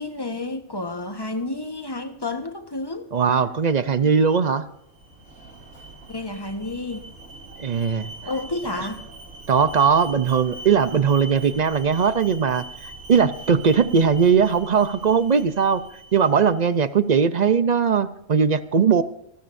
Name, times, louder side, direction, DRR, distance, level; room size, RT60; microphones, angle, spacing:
voice 1, 0.0-3.1 6.1-7.1 8.2-9.0, left 2 dB, 20° left, 1.2 m, -30 dB
voice 2, 3.1-4.7 7.6-8.1 9.5-15.8 16.1-19.0, right 6 dB, 50° right, 0.5 m, -19 dB
Alarm, 4.8-16.8, right 2 dB, 75° right, 3.0 m, -42 dB
25.5 x 13.5 x 2.6 m
omnidirectional pair, 1.4 m